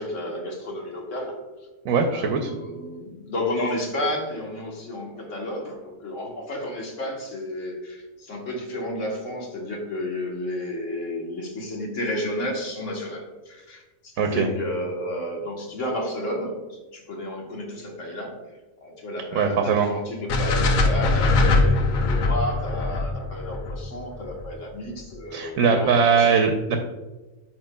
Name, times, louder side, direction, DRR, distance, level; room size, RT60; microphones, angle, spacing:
voice 1, 0.0-1.4 2.1-18.4 18.8-26.4, left 1 dB, 65° left, 0 dB, 1.5 m, -32 dB
voice 2, 1.8-2.5 14.2-14.5 19.3-19.9 25.3-26.8, right 5 dB, 85° right, 4 dB, 1.0 m, -21 dB
sound 1, 20.3-24.5, left 2 dB, 90° left, 1.2 m, -21 dB
8.8 x 4.9 x 2.2 m, 1.2 s
omnidirectional pair, 1.4 m